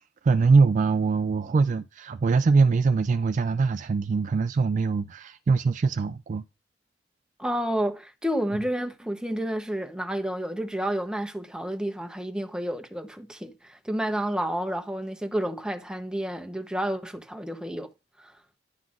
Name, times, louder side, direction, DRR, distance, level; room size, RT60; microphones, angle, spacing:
voice 1, 0.2-6.4, right 4 dB, 45° right, 0.3 m, -22 dB
voice 2, 7.4-17.9 18.2-18.3, right 1 dB, 5° right, 0.8 m, -30 dB
10.5 x 5.7 x 2.5 m
head